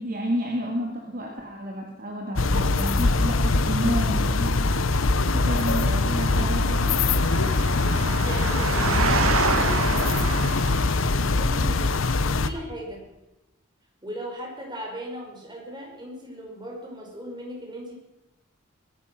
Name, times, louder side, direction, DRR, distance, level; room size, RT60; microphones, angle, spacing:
voice 1, 0.0-4.6 5.3-7.4, equal, 45° right, 0 dB, 2.4 m, -30 dB
sound 1, 2.4-12.5, left 3 dB, 70° left, 0.9 m, -23 dB
Engine, 5.6-11.2, right 3 dB, 90° right, 2.0 m, -28 dB
voice 2, 7.8-10.2 11.0-13.1 14.0-17.9, equal, 20° right, -1 dB, 5.0 m, -38 dB
22.5 x 10.5 x 6.2 m, 1.0 s
head